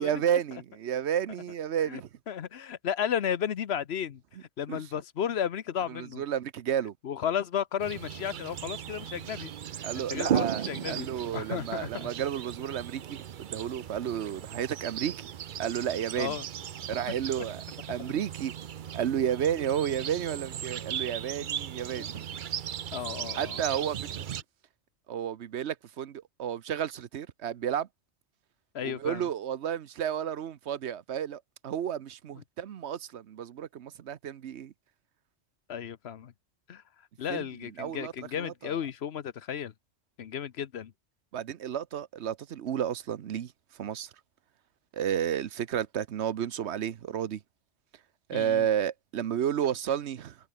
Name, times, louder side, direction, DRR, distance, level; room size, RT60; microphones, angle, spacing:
voice 1, 0.0-2.1 4.7-4.8 5.9-6.9 9.8-15.2 15.6-16.4 16.9-17.6 17.9-18.5 18.9-22.3 23.3-24.2 25.1-27.9 28.8-34.7 37.3-37.4 37.8-38.1 38.4-38.8 41.3-43.5 43.8-44.1 44.9-47.4 48.3-50.4, right 9 dB, 75° right, 1.1 m, -32 dB
voice 2, 2.3-4.2 4.6-6.2 7.0-9.5 9.8-12.1 16.2-16.5 17.1-17.5 22.0-22.1 22.9-23.6 28.7-29.3 32.4-32.5 35.7-36.3 36.7-36.8 37.2-39.7 40.2-40.9 48.3-48.7, left 8 dB, 70° left, 1.1 m, -34 dB
sound 1, 7.8-24.4, right 9 dB, 55° right, 0.7 m, -37 dB
omnidirectional pair, 1.2 m